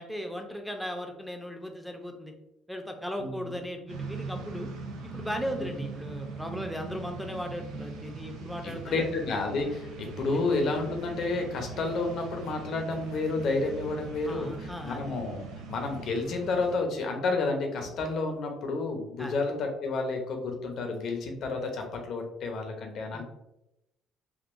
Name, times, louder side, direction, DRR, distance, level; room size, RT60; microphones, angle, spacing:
voice 1, 0.0-2.3 2.7-4.7 5.0-9.1 14.3-15.0 19.2-19.3 23.1-23.2, equal, ahead, 4 dB, 0.6 m, -37 dB
voice 2, 3.2-3.5 5.5-5.7 8.6-15.4 15.7-23.2, left 3 dB, 65° left, 3 dB, 0.7 m, -30 dB
sound 1, 3.9-16.7, right 4 dB, 75° right, 0.5 m, -41 dB
3.6 x 2.5 x 2.5 m, 0.88 s
hypercardioid pair, 65°, 0 cm